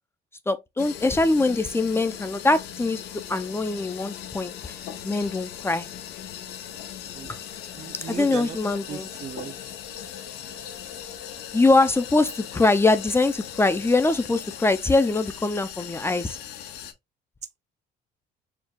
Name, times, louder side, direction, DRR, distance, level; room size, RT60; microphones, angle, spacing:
voice 1, 0.5-3.0 3.3-4.5 5.0-5.9 7.3-7.4 8.1-9.1 11.5-16.4, left 2 dB, 15° left, 0.5 m, -22 dB
sound 1, 0.8-16.9, left 10 dB, 80° left, 0.8 m, -39 dB
voice 2, 7.8-8.6 8.9-9.5, right 8 dB, 40° right, 0.5 m, -36 dB
4.5 x 2.4 x 3.6 m
cardioid pair, 110°, 17 cm